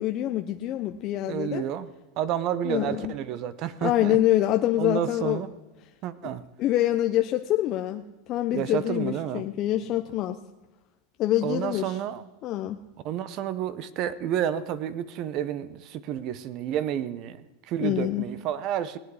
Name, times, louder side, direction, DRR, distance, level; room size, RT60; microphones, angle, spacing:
voice 1, 0.0-1.6 2.6-3.1 3.8-5.4 6.6-10.4 11.2-12.0 12.4-12.8 17.8-18.2, left 13 dB, 40° left, 6 dB, 0.5 m, -26 dB
voice 2, 1.3-1.9 2.2-4.2 4.8-5.5 6.0-6.4 8.5-9.5 11.4-12.3 13.0-17.4 17.7-19.0, right 10 dB, 45° right, 15 dB, 0.7 m, -30 dB
19.5 x 8.2 x 4.8 m, 1.1 s
supercardioid pair, 140°, 0 cm